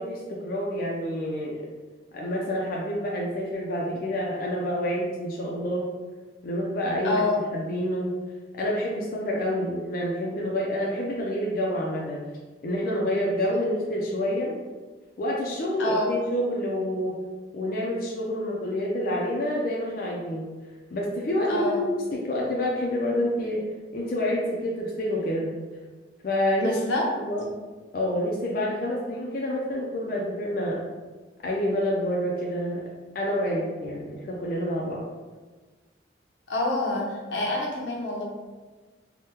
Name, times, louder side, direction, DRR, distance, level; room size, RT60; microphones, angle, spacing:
voice 1, 0.0-1.6 2.1-5.9 6.4-7.2 7.5-8.1 8.6-12.2 12.6-14.5 15.2-17.2 17.5-20.4 20.9-21.9 22.1-23.7 23.9-25.6 26.2-26.8 27.2-27.5 27.9-30.8 31.4-32.8 33.1-35.0, left 1 dB, 50° left, -3 dB, 0.4 m, -28 dB
voice 2, 7.0-7.4 15.8-16.1 21.5-21.8 26.6-27.1 36.5-38.2, left 2 dB, 85° left, -2 dB, 0.7 m, -27 dB
3.5 x 2.1 x 2.8 m, 1.3 s
head